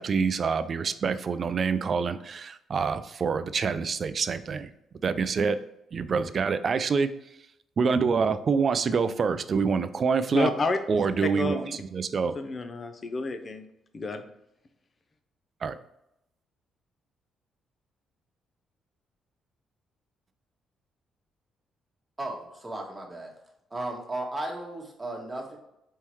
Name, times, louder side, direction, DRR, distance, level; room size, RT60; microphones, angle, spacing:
voice 1, 0.0-4.7 5.0-5.6 5.9-7.1 7.8-10.5 10.9-12.4 15.6-15.7, right 5 dB, 45° right, 12 dB, 0.3 m, -26 dB
voice 2, 10.3-10.8 11.2-11.6 12.3-13.6 13.9-14.2, left 3 dB, 35° left, 8 dB, 0.6 m, -29 dB
voice 3, 22.2-23.3 23.7-25.6, right 2 dB, 20° right, 0 dB, 1.2 m, -35 dB
4.3 x 3.7 x 3.0 m, 0.83 s
cardioid pair, 90°, 0 cm